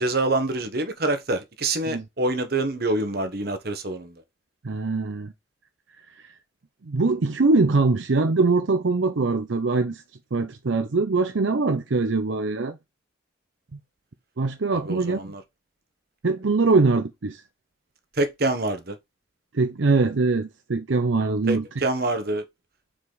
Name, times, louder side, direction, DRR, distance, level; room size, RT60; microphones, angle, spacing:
voice 1, 0.0-4.1 14.9-15.4 18.2-19.0 21.5-22.4, right 2 dB, 50° right, 1.2 m, -26 dB
voice 2, 4.6-5.3 6.8-10.0 10.3-12.8 13.7-13.8 14.4-15.3 16.2-17.4 19.5-21.8, right 3 dB, 75° right, 0.7 m, -22 dB
5.0 x 4.8 x 3.9 m
head